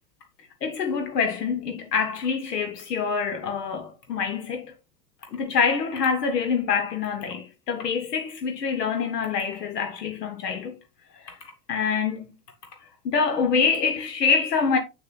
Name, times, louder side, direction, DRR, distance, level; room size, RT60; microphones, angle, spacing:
voice 1, 0.6-4.7 5.3-10.8 11.1-12.4 13.0-14.8, left 5 dB, 85° left, 1.0 m, -26 dB
7.8 x 6.5 x 2.3 m
hypercardioid pair, 90°, 47 cm